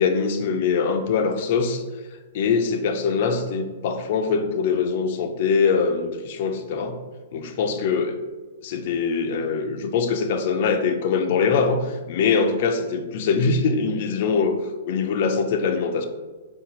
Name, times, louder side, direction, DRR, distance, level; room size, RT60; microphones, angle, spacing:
voice 1, 0.0-1.8 2.3-7.0 7.3-8.2 8.6-14.6 14.9-16.0, left 5 dB, 40° left, 5 dB, 0.4 m, -23 dB
4.2 x 2.3 x 4.0 m, 1.3 s
hypercardioid pair, 175°, 0 cm